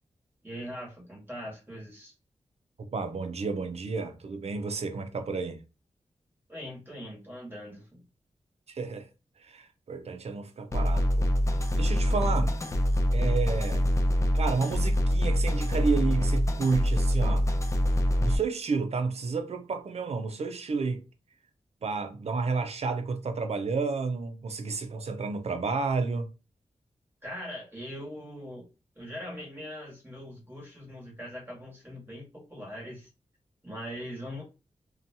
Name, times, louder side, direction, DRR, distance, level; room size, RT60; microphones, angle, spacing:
voice 1, 0.4-2.1 6.5-8.0 27.2-28.7 28.9-33.1 33.6-34.4, equal, 15° right, 1.4 m, -41 dB
voice 2, 2.8-5.6 8.7-9.1 9.4-11.3 11.5-12.5 13.1-13.9 14.3-17.5 18.2-21.0 21.8-26.3, right 4 dB, 60° right, 0.5 m, -31 dB
sound 1, 10.7-18.4, equal, 25° left, 0.4 m, -25 dB
2.7 x 2.2 x 2.7 m
wide cardioid pair, 100°, 12 cm